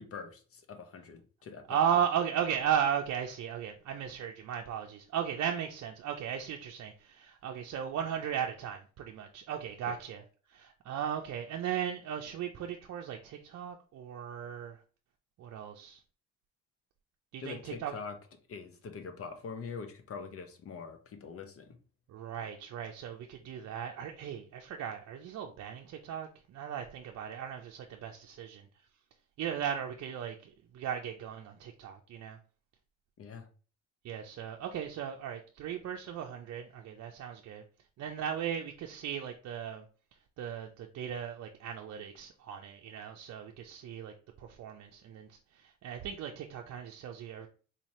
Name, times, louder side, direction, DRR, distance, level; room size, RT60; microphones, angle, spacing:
voice 1, 0.0-1.8 9.9-10.0 17.4-18.1 18.5-21.8 33.2-33.5, left 5 dB, 50° left, 7 dB, 0.7 m, -43 dB
voice 2, 1.7-10.2 10.5-14.8 15.4-16.0 17.3-17.9 22.1-28.7 29.4-32.4 34.0-37.6 38.0-39.8 40.4-47.5, right 8 dB, 60° right, 2 dB, 0.5 m, -36 dB
4.1 x 2.7 x 3.0 m, 0.38 s
cardioid pair, 90°, 30 cm